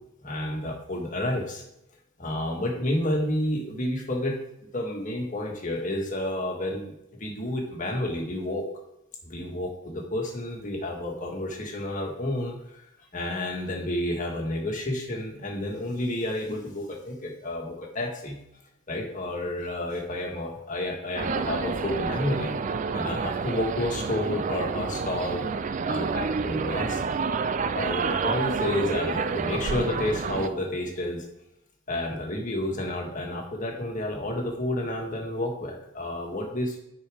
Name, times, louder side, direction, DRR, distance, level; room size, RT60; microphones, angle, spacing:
voice 1, 0.2-1.6 2.2-4.4 4.7-6.9 7.2-8.7 9.2-12.8 13.1-18.4 18.9-22.6 22.9-25.4 25.9-27.0 27.7-31.2 31.9-36.7, left 1 dB, 35° left, 0 dB, 1.7 m, -30 dB
sound 1, 21.1-30.5, right 5 dB, 35° right, 0.3 m, -29 dB
9.7 x 4.5 x 5.0 m, 0.83 s
head